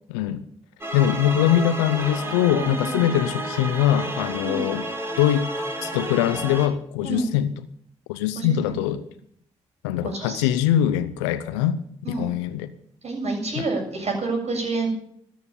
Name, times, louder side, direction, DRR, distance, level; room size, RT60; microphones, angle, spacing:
voice 1, 0.1-0.4 0.9-4.9 5.2-5.5 5.8-7.7 8.1-9.0 9.8-11.8 12.1-12.7 13.6-13.7, left 11 dB, 85° left, 12 dB, 0.7 m, -22 dB
sound 1, 0.8-6.7, right 1 dB, 15° right, 4.8 m, -31 dB
voice 2, 2.5-3.0 4.4-4.6 7.0-7.3 8.4-8.8 10.0-10.5 12.0-12.3 13.0-14.9, right 3 dB, 50° right, 1 dB, 7.5 m, -28 dB
13.5 x 9.6 x 8.5 m, 0.68 s
hypercardioid pair, 45°, 14 cm